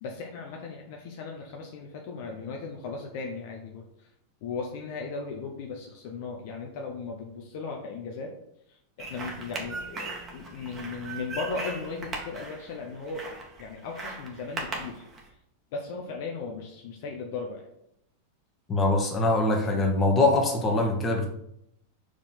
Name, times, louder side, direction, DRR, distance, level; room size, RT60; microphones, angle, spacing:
voice 1, 0.0-3.9 4.4-8.3 8.7-13.2 13.6-15.1 15.7-17.7, left 4 dB, 50° left, 1 dB, 0.9 m, -37 dB
sound 1, 9.0-15.3, right 3 dB, 25° right, 1.7 m, -38 dB
voice 2, 18.7-21.3, left 2 dB, 20° left, 1 dB, 1.6 m, -23 dB
4.8 x 4.3 x 5.6 m, 0.76 s
figure-of-eight pair, 90°, 0 cm